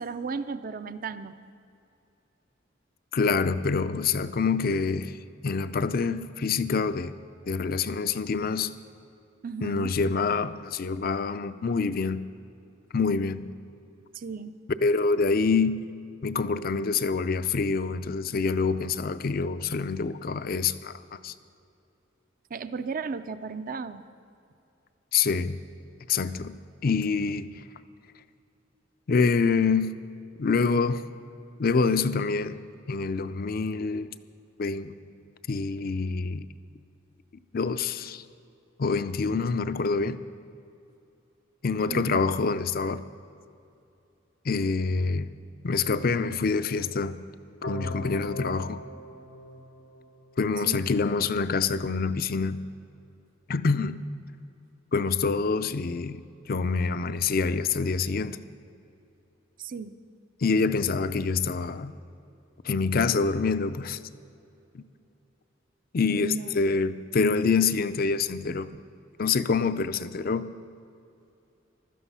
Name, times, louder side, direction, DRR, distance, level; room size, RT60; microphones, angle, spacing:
voice 1, 0.0-1.4 9.4-9.9 14.1-14.6 22.5-24.0 41.9-42.2 50.6-50.9 59.6-59.9 66.1-66.5, right 5 dB, 45° right, 0.5 m, -34 dB
voice 2, 3.1-5.2 5.4-7.1 7.5-8.7 9.6-12.2 12.9-13.4 14.8-15.8 16.2-20.9 21.2-21.3 25.1-25.6 26.1-26.6 26.8-27.5 29.1-30.0 30.4-31.0 31.6-32.6 32.9-34.1 34.6-35.0 35.5-36.5 37.5-38.2 38.8-40.2 41.6-43.0 44.4-45.3 45.6-47.2 47.6-48.8 50.4-52.6 53.5-54.0 54.9-56.2 56.5-58.4 60.4-61.9 62.6-64.0 64.7-64.8 65.9-68.7 69.2-70.5, left 4 dB, 50° left, 0.5 m, -26 dB
sound 1, 47.6-50.6, left 1 dB, 90° left, 1.2 m, -39 dB
15.5 x 12.5 x 5.6 m
head